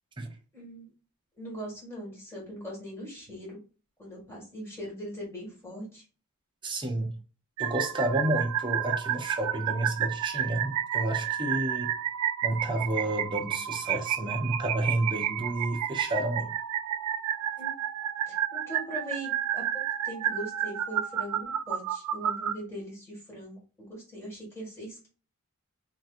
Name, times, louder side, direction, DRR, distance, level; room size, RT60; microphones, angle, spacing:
voice 1, 0.5-0.9 1.4-3.6 4.0-6.0 17.6-17.7 18.3-19.6 20.0-25.1, equal, 10° left, 1.8 m, -40 dB
voice 2, 6.6-7.1 7.6-11.9 12.4-16.5, right 1 dB, 20° right, 0.7 m, -30 dB
sound 1, 7.6-22.6, right 10 dB, 85° right, 0.3 m, -31 dB
3.5 x 2.9 x 2.4 m
head